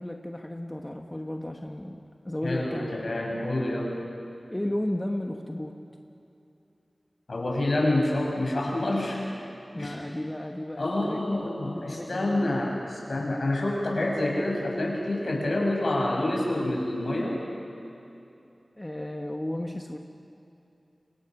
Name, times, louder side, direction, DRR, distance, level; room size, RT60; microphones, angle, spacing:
voice 1, 0.0-3.1 4.5-5.7 9.7-12.7 18.8-20.0, left 1 dB, 20° left, 2 dB, 1.4 m, -34 dB
voice 2, 2.4-4.0 7.3-9.2 9.8-10.0 10.8-17.4, left 1 dB, 70° left, -1 dB, 6.3 m, -27 dB
30.0 x 25.0 x 6.1 m, 2.8 s
wide cardioid pair, 60°, 0 cm